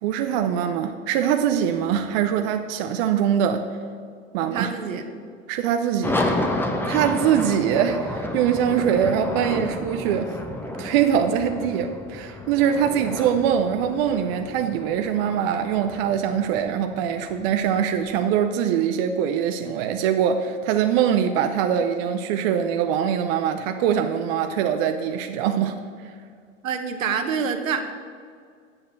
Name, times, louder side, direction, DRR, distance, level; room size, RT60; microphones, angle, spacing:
voice 1, 0.0-3.7 4.3-4.7 5.5-6.5 6.9-10.3 10.8-25.7, right 8 dB, 45° right, 7 dB, 0.7 m, -23 dB
voice 2, 4.4-5.0 26.6-27.8, right 6 dB, 75° right, 7 dB, 1.2 m, -26 dB
sound 1, 6.0-18.2, left 1 dB, 5° left, 0.8 m, -31 dB
7.8 x 6.6 x 7.6 m, 2.1 s
hypercardioid pair, 105°, 39 cm